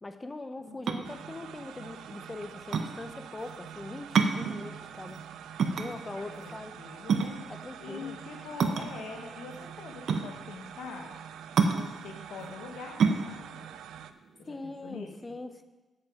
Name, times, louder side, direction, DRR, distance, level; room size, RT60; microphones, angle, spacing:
voice 1, 0.0-5.2 5.7-6.7 7.5-8.2 14.5-15.6, left 2 dB, 25° left, 9 dB, 0.8 m, -41 dB
sound 1, 0.7-15.1, right 5 dB, 70° right, 0.8 m, -30 dB
sound 2, 1.0-14.1, right 9 dB, 90° right, 0.4 m, -46 dB
voice 2, 6.0-7.4 7.8-11.1 11.6-13.7 14.4-15.4, left 4 dB, 90° left, 2 dB, 1.2 m, -44 dB
8.4 x 7.4 x 5.0 m, 1.2 s
cardioid pair, 85°, 0 cm